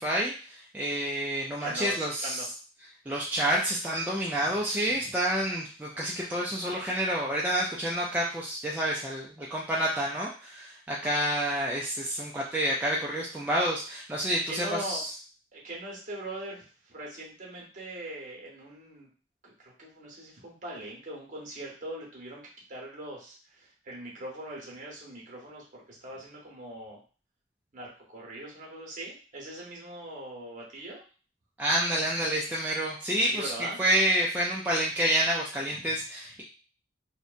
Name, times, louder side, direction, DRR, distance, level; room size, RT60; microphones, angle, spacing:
voice 1, 0.0-2.4 3.1-15.1 31.6-33.5 33.8-36.4, right 1 dB, 10° right, -4 dB, 0.3 m, -28 dB
voice 2, 1.6-2.5 6.2-6.5 14.5-15.0 15.5-19.1 19.4-22.4 22.7-27.0 27.7-31.0 33.3-33.8 35.7-35.8, right 1 dB, 45° right, -3 dB, 0.9 m, -41 dB
2.7 x 2.1 x 2.4 m, 0.37 s
head